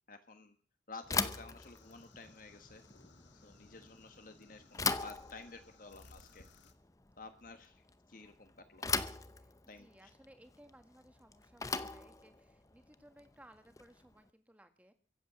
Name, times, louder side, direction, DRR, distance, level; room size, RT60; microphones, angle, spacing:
voice 1, 0.1-0.5 0.9-2.8 3.3-6.4 7.2-8.8 9.7-10.1, left 3 dB, 45° left, 8 dB, 1.5 m, -52 dB
Bicycle / Thump thud, 1.0-14.1, left 4 dB, 15° left, 0.7 m, -40 dB
sound 1, 1.6-6.7, left 3 dB, 75° left, 1.7 m, -63 dB
voice 2, 3.3-3.8 9.3-9.5 9.8-14.9, right 1 dB, 10° right, 8 dB, 1.6 m, -61 dB
23.0 x 8.3 x 7.5 m, 0.42 s
head